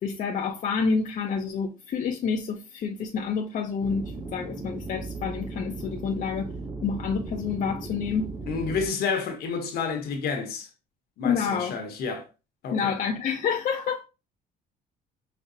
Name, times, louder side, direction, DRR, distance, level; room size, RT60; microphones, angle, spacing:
voice 1, 0.0-6.5 6.8-8.3 11.2-11.8 12.7-14.1, left 6 dB, 50° left, 0.5 m, -28 dB
sound 1, 3.8-8.9, right 3 dB, 15° right, 0.6 m, -37 dB
voice 2, 8.5-10.7 11.2-12.3 12.6-13.0, left 5 dB, 65° left, 0.9 m, -30 dB
5.1 x 2.0 x 2.6 m
cardioid pair, 110°, 17 cm